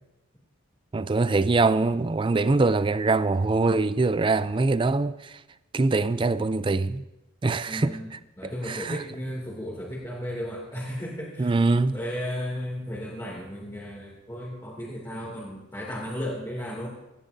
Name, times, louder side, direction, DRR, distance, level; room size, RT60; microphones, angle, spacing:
voice 1, 0.9-5.3 5.7-7.0 7.4-8.2 8.7-9.0 11.4-12.0, right 3 dB, 25° right, 0.3 m, -23 dB
voice 2, 7.7-8.1 8.4-11.7 11.9-16.9, equal, 15° left, 2.5 m, -34 dB
17.5 x 14.5 x 2.7 m
head